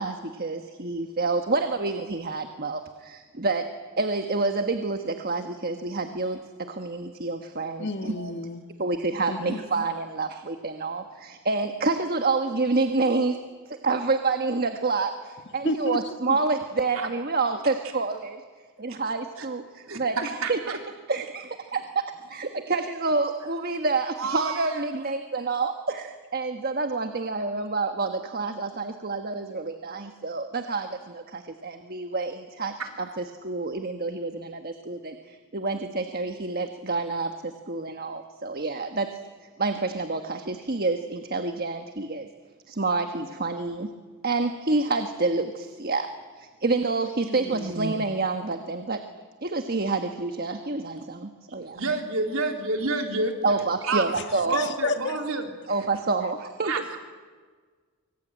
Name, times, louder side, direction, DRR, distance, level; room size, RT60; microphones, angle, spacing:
voice 1, 0.0-3.7 4.0-8.3 8.8-13.4 13.7-18.4 18.8-20.8 21.1-32.7 33.2-39.1 39.6-42.3 42.7-43.9 44.2-46.1 46.4-49.0 49.4-51.8 53.4-54.6 55.7-56.7, right 3 dB, 45° right, 6 dB, 1.3 m, -28 dB
voice 2, 7.8-8.6 9.3-9.6 15.6-16.4 47.2-47.7 54.1-54.2 54.5-55.2, left 2 dB, 50° left, 7 dB, 1.8 m, -31 dB
voice 3, 19.9-20.5 24.2-24.8 32.8-32.9 51.7-53.4 53.8-54.1 54.5-55.9 56.6-57.0, right 3 dB, 70° right, 3 dB, 3.7 m, -29 dB
24.5 x 24.5 x 9.0 m, 1.5 s
head